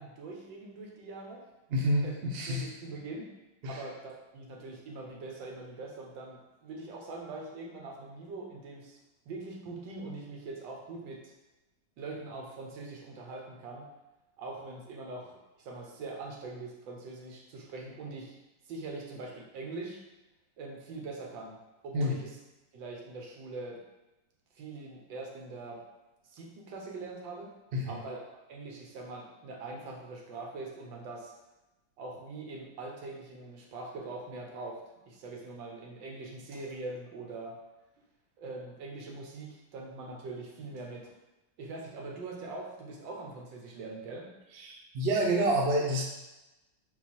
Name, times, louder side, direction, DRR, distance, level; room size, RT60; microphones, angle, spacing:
voice 1, 0.0-1.4 2.0-2.2 2.5-3.3 3.7-9.0 9.3-11.3 12.0-13.9 14.4-15.3 15.6-18.3 18.7-20.0 20.6-21.6 21.8-22.4 22.7-23.8 24.6-25.8 26.3-27.5 27.8-28.2 28.5-31.3 32.0-34.8 35.1-37.5 38.4-41.1 41.6-44.3, right 3 dB, 75° right, -1 dB, 1.5 m, -42 dB
voice 2, 1.7-2.6 3.6-3.8 21.9-22.1 27.7-28.0 44.6-46.0, right 1 dB, 90° right, -1 dB, 0.5 m, -28 dB
4.4 x 2.3 x 4.2 m, 1.0 s
omnidirectional pair, 2.1 m